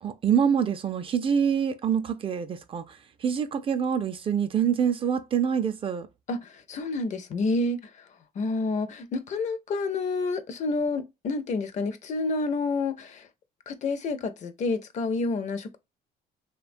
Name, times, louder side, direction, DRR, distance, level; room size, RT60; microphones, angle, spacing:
voice 1, 0.0-6.1, right 7 dB, 30° right, 0.4 m, -26 dB
voice 2, 6.3-8.0 8.4-13.3 13.7-15.8, left 3 dB, 45° left, 0.5 m, -29 dB
3.0 x 2.2 x 2.5 m
cardioid pair, 110°, 17 cm